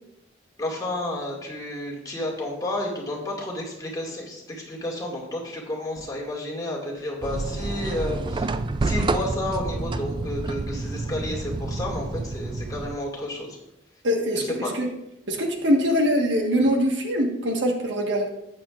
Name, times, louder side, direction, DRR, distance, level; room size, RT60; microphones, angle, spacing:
voice 1, 0.6-13.6 14.3-14.7, left 1 dB, 20° left, -2 dB, 2.1 m, -31 dB
sound 1, 7.2-13.0, right 3 dB, 25° right, 0.3 m, -29 dB
voice 2, 14.0-14.9 15.3-18.3, equal, 65° right, 2 dB, 1.4 m, -23 dB
12.5 x 9.0 x 2.4 m, 0.89 s
head